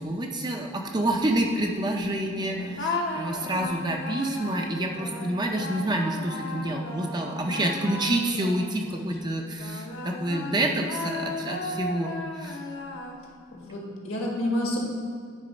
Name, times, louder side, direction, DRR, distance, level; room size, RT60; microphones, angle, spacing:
voice 1, 0.0-12.6, right 1 dB, 20° right, 2 dB, 0.5 m, -28 dB
voice 2, 2.4-2.7 8.9-9.1 13.5-14.8, left 1 dB, 80° left, -2 dB, 1.7 m, -30 dB
sound 1, 2.8-9.0 9.6-13.5, left 2 dB, 55° left, 0.8 m, -35 dB
9.7 x 4.0 x 5.2 m, 2.3 s
head